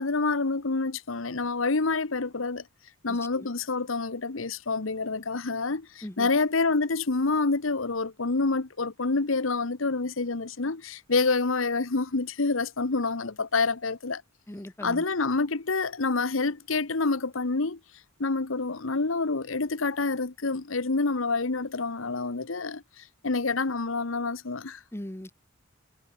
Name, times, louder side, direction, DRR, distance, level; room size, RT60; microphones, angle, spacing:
voice 1, 0.0-2.6 3.0-14.2 14.8-17.8 18.2-24.8, left 3 dB, 80° left, 1.2 m, -27 dB
voice 2, 3.1-3.5 6.0-6.3 14.5-15.0 24.9-25.3, left 1 dB, 15° left, 1.1 m, -39 dB
head